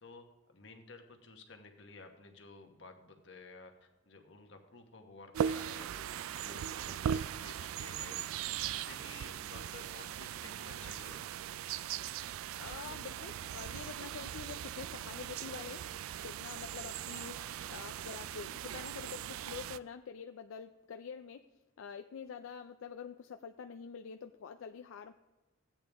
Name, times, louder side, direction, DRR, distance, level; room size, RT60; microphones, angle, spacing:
voice 1, 0.0-8.4 8.6-11.2, left 3 dB, 60° left, 4 dB, 1.2 m, -54 dB
sound 1, 5.3-19.8, right 9 dB, 90° right, 0.3 m, -39 dB
voice 2, 12.5-15.9 16.2-21.5 21.8-25.1, left 6 dB, 80° left, 6 dB, 0.4 m, -46 dB
14.0 x 8.8 x 3.4 m, 1.1 s
head